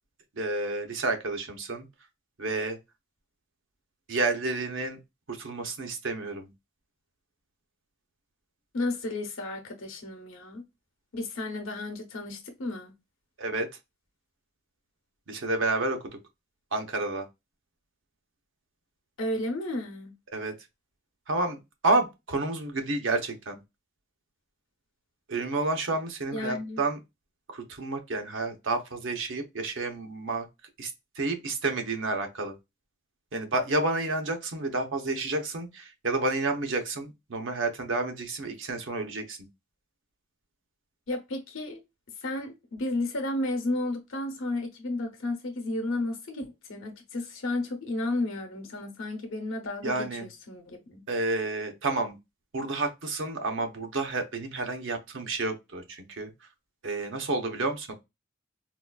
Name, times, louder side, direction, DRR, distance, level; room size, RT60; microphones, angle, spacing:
voice 1, 0.3-1.9 2.4-2.8 4.1-5.0 5.3-6.5 13.4-13.7 15.3-16.0 16.7-17.3 20.3-20.5 21.3-21.6 21.8-23.6 25.3-27.0 27.5-30.5 30.8-30.9 31.2-32.5 33.3-39.4 49.8-50.3 51.1-52.2 52.5-56.3 56.8-57.9, right 2 dB, 65° right, 0.8 m, -30 dB
voice 2, 8.7-10.6 11.1-12.9 19.2-20.1 26.3-26.8 41.1-41.8 42.2-51.0, left 2 dB, 85° left, 0.7 m, -33 dB
3.9 x 2.4 x 2.2 m
head